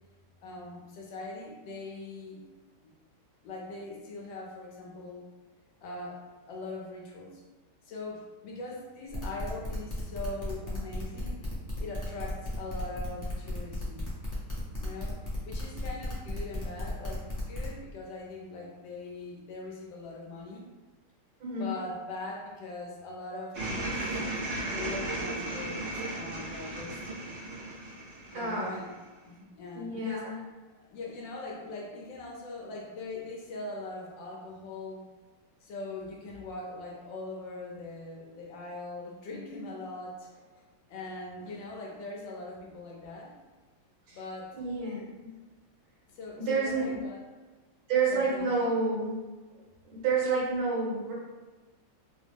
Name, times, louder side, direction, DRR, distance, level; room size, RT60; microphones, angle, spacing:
voice 1, 0.4-2.4 2.8-2.9 3.4-5.2 5.8-7.4 7.8-11.5 11.8-14.1 14.7-20.7 21.5-24.0 24.7-27.2 28.3-28.9 29.2-30.4 30.9-35.0 35.6-40.4 40.9-43.3 44.1-44.6 46.1-47.2 48.1-48.6, left 2 dB, 70° left, -2 dB, 1.3 m, -41 dB
sound 1, 9.1-17.7, left 2 dB, 20° left, 0.4 m, -37 dB
voice 2, 21.4-21.7 28.3-28.8 29.7-30.4 44.5-45.3 46.4-47.0 47.9-49.2 49.9-51.1, right 4 dB, 85° right, -5 dB, 1.9 m, -29 dB
sound 2, 23.5-29.0, right 1 dB, 60° right, 1.8 m, -35 dB
3.9 x 2.0 x 3.4 m, 1.3 s
omnidirectional pair, 2.2 m